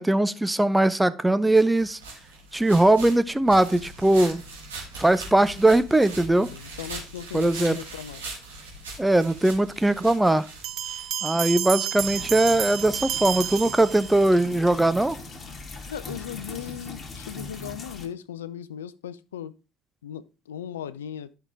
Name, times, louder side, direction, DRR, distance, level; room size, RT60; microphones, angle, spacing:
voice 1, 0.0-2.0 2.5-4.4 5.0-6.5 7.3-7.8 9.0-10.5 11.2-15.2, right 1 dB, 10° right, 0.7 m, -20 dB
sound 1, 1.5-11.5, right 3 dB, 85° right, 2.3 m, -41 dB
voice 2, 6.3-8.2 15.9-19.5 20.0-21.3, left 10 dB, 80° left, 0.4 m, -37 dB
sound 2, 10.6-14.4, right 11 dB, 55° right, 0.5 m, -31 dB
sound 3, 12.0-18.1, left 3 dB, 30° left, 2.1 m, -40 dB
11.0 x 5.7 x 3.5 m
hypercardioid pair, 60°, 0 cm